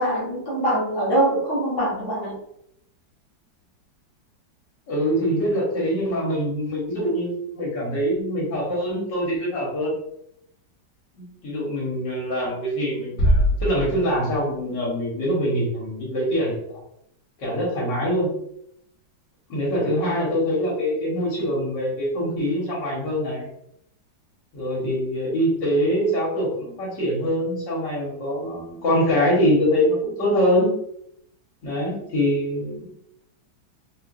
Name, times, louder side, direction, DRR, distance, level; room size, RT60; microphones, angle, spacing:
voice 1, 0.0-2.4, right 1 dB, 15° left, -7 dB, 0.8 m, -23 dB
voice 2, 4.9-10.0 11.2-16.8 17.4-18.3 19.5-23.5 24.5-30.8 31.6-32.9, equal, 65° left, -4 dB, 1.9 m, -24 dB
sound 1, 13.2-14.8, equal, 45° left, 1.4 m, -22 dB
4.3 x 2.5 x 2.6 m, 0.75 s
omnidirectional pair, 2.1 m